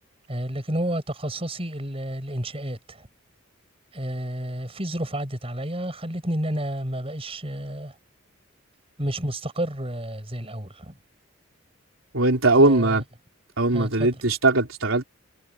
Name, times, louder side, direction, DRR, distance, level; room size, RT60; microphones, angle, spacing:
voice 1, 0.3-3.1 3.9-7.9 9.0-10.9 12.6-13.0 13.7-14.1, right 1 dB, 30° right, 6.0 m, -30 dB
voice 2, 12.1-13.0 13.6-15.0, right 2 dB, 90° right, 3.7 m, -20 dB
head